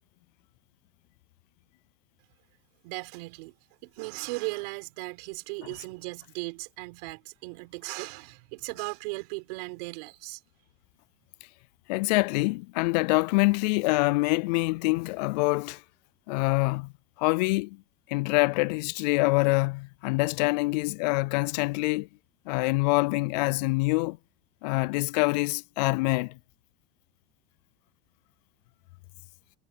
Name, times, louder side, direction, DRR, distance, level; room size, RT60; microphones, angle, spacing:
voice 1, 2.8-3.5 3.8-10.4, right 28 dB, 70° right, 4.5 m, -37 dB
voice 2, 11.9-15.8 16.3-16.9 17.2-17.8 18.1-22.1 22.5-24.2 24.6-26.4, left 25 dB, 85° left, 0.4 m, -25 dB
cardioid pair, 165°, 21 cm